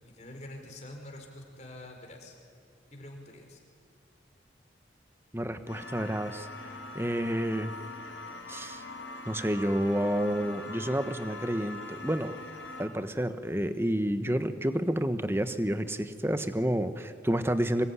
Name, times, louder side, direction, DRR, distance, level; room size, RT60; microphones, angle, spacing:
voice 1, 0.0-2.4 2.9-3.6, left 1 dB, 35° left, 2 dB, 4.7 m, -46 dB
voice 2, 5.3-6.5 6.9-7.7 8.5-8.8 9.3-12.4 12.8-17.9, equal, 15° right, 10 dB, 1.2 m, -29 dB
sound 1, 5.7-12.9, left 2 dB, 80° left, 5.0 m, -43 dB
26.5 x 21.0 x 9.8 m, 2.2 s
head